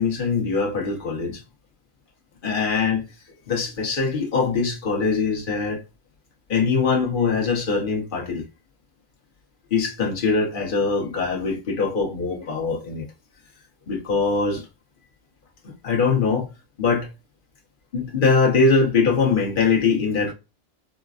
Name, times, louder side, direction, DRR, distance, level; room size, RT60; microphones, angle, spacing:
voice 1, 0.0-1.4 2.4-3.0 3.5-5.8 6.5-8.4 9.7-13.1 13.9-14.6 15.6-16.5 16.8-17.1 17.9-20.3, left 4 dB, 40° left, 1.2 m, -22 dB
5.1 x 2.2 x 2.4 m
omnidirectional pair, 1.3 m